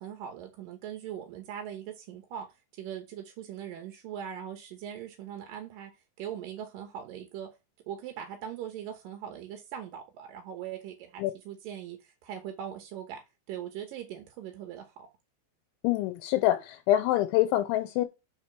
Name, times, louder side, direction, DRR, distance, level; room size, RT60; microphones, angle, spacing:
voice 1, 0.0-2.5 2.8-5.9 6.2-7.5 7.9-13.2 13.5-15.1, right 9 dB, 75° right, 2.1 m, -40 dB
voice 2, 15.8-18.1, left 14 dB, 85° left, 3.1 m, -25 dB
5.8 x 5.2 x 6.0 m
omnidirectional pair, 5.4 m